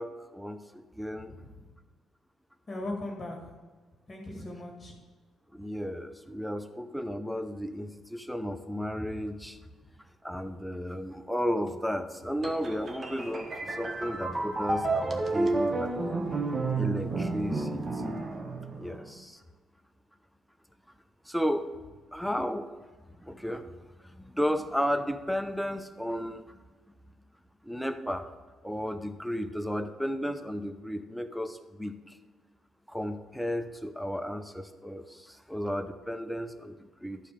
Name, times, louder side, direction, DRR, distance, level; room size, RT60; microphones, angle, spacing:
voice 1, 0.0-1.3 5.5-9.6 10.2-13.5 13.8-15.9 16.8-18.2 18.8-19.4 21.3-21.7 22.1-22.7 23.2-23.7 24.2-26.6 27.6-28.3 28.6-32.0 32.9-37.2, equal, ahead, 8 dB, 0.7 m, -33 dB
voice 2, 1.1-1.6 2.7-3.5 4.1-4.9, left 1 dB, 30° left, -1 dB, 2.0 m, -39 dB
sound 1, 12.4-19.1, right 3 dB, 35° right, 1.2 m, -31 dB
11.5 x 4.4 x 6.7 m, 1.4 s
cardioid pair, 90°, 0 cm